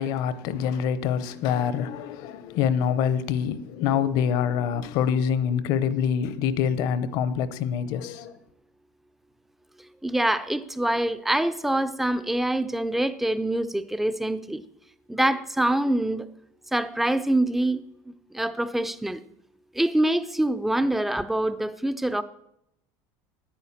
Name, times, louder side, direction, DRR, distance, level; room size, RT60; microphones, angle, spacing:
voice 1, 0.0-8.4, left 8 dB, 55° left, 0.8 m, -25 dB
voice 2, 10.0-14.6 15.1-16.3 16.7-17.8 18.3-19.2 19.8-22.2, right 1 dB, 5° right, 0.4 m, -25 dB
10.0 x 9.1 x 7.2 m
cardioid pair, 165°, 8 cm